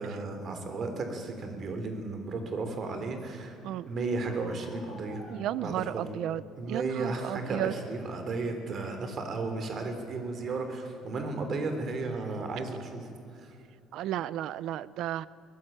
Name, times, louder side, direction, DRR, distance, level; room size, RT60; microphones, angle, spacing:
voice 1, 0.0-3.6 3.9-5.2 5.6-6.1 6.6-13.1 13.4-13.5, right 3 dB, 35° right, 6 dB, 3.5 m, -34 dB
Bark, 4.2-6.3 7.0-7.7 8.1-8.3 8.7-9.0 10.4-10.7 11.2-11.3 11.7-12.1, left 1 dB, 10° right, 6.4 m, -52 dB
voice 2, 5.3-6.4 6.7-7.7 13.9-15.3, right 12 dB, 60° right, 18 dB, 0.6 m, -33 dB
23.0 x 19.0 x 8.9 m, 2.6 s
cardioid pair, 170°, 0 cm